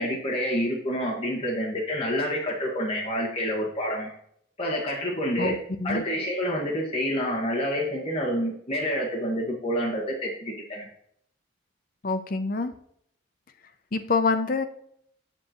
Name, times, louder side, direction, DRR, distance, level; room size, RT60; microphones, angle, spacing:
voice 1, 0.0-4.1 4.6-5.6 5.8-10.9, equal, 30° left, -4 dB, 1.6 m, -28 dB
voice 2, 12.0-12.7 13.9-14.6, left 4 dB, 45° left, 8 dB, 0.6 m, -25 dB
7.6 x 7.5 x 3.0 m, 0.68 s
head